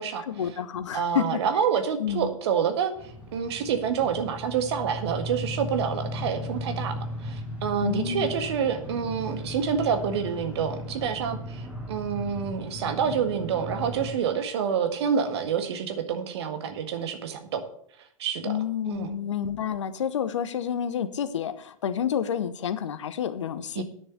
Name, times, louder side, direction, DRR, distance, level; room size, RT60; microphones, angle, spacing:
voice 1, 0.2-1.4 2.0-2.3 7.8-8.3 18.4-23.8, left 8 dB, 60° left, 12 dB, 1.0 m, -29 dB
voice 2, 0.9-2.9 3.3-17.6 18.2-18.5 18.9-19.1 23.7-23.8, right 7 dB, 50° right, 7 dB, 1.6 m, -27 dB
sound 1, 3.0-14.1, left 1 dB, 10° right, 2.9 m, -36 dB
9.6 x 6.8 x 6.9 m, 0.66 s
figure-of-eight pair, 100°, 18 cm